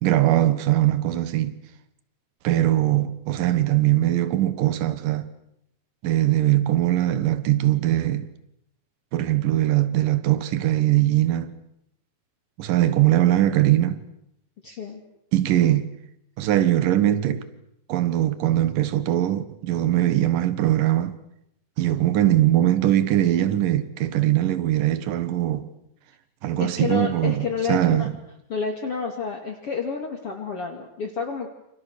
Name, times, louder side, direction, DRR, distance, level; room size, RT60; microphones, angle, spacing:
voice 1, 0.0-1.5 2.4-5.3 6.0-8.3 9.1-11.5 12.6-14.0 15.3-15.9 16.4-17.5 17.9-21.2 21.8-25.7 26.4-28.1, right 13 dB, 70° right, 3.0 m, -21 dB
voice 2, 14.6-15.0 26.6-28.1 28.5-31.5, left 5 dB, 40° left, 3.0 m, -29 dB
29.0 x 28.0 x 6.6 m
omnidirectional pair, 4.2 m